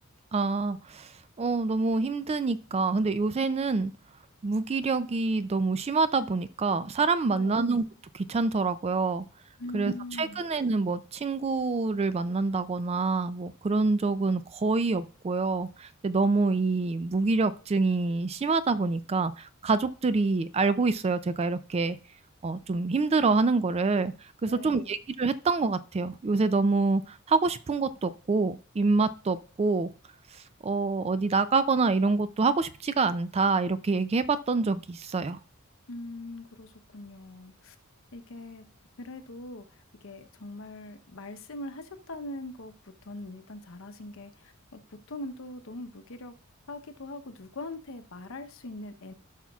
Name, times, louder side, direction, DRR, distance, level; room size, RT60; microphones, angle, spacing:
voice 1, 0.3-1.1 1.4-3.9 4.4-7.9 8.1-9.2 9.7-9.9 10.2-22.0 22.4-24.1 24.4-29.9 30.6-35.4, right 3 dB, 30° right, 13 dB, 0.4 m, -26 dB
voice 2, 7.3-7.7 9.6-10.5 24.5-24.9 35.9-37.8 38.1-38.7 39.0-46.3 46.7-49.1, left 2 dB, 70° left, 9 dB, 0.8 m, -42 dB
16.0 x 5.9 x 2.4 m, 0.41 s
head